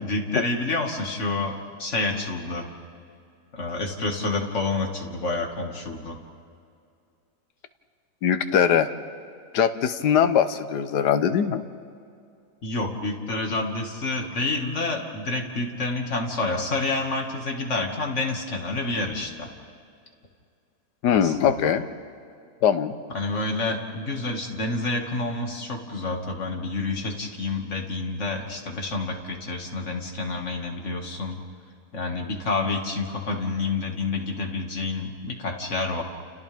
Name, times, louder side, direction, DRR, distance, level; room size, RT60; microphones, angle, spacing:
voice 1, 0.0-2.7 3.5-6.2 12.6-19.5 21.1-21.7 23.1-31.4 31.9-36.0, left 3 dB, 45° left, 2 dB, 2.3 m, -28 dB
voice 2, 8.2-8.9 9.5-11.6 21.0-21.9 22.6-22.9, left 8 dB, 75° left, 10 dB, 1.5 m, -21 dB
30.0 x 29.5 x 3.5 m, 2.4 s
omnidirectional pair, 1.8 m